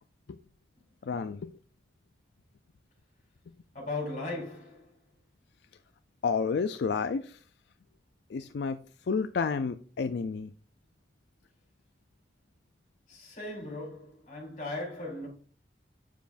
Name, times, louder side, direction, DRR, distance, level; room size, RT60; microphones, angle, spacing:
voice 1, 1.0-1.5 6.2-7.4 8.3-10.5, left 5 dB, 70° left, 0.4 m, -30 dB
voice 2, 3.7-5.0 13.1-15.3, left 2 dB, 45° left, 4.1 m, -38 dB
9.1 x 7.0 x 2.5 m
head